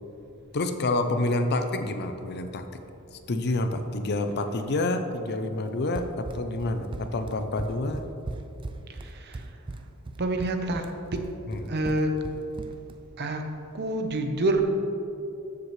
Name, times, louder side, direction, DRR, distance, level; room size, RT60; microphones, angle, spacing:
voice 1, 0.5-2.8 3.1-8.1 11.5-11.6, left 2 dB, 50° left, 8 dB, 0.6 m, -28 dB
Run, 5.9-13.0, right 2 dB, 20° right, 0.3 m, -38 dB
voice 2, 8.9-9.6 10.2-11.3 11.7-12.2 13.2-13.4 13.7-14.6, right 2 dB, 50° right, 5 dB, 0.8 m, -28 dB
13.0 x 7.4 x 3.2 m, 2.8 s
head